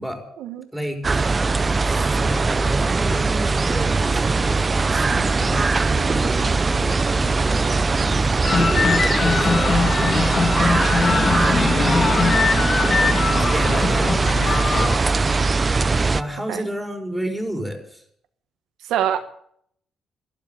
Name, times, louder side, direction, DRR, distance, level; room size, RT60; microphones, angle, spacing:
voice 1, 0.7-8.3 8.9-12.3 13.5-15.4 16.1-18.0, equal, ahead, 4 dB, 4.6 m, -32 dB
sound 1, 1.0-16.2, right 3 dB, 30° right, 0.8 m, -20 dB
sound 2, 8.4-15.0, left 5 dB, 40° left, 1.3 m, -21 dB
voice 2, 18.9-19.2, right 10 dB, 85° right, 7 dB, 1.4 m, -24 dB
12.5 x 12.0 x 8.8 m, 0.66 s
cardioid pair, 90°, 0 cm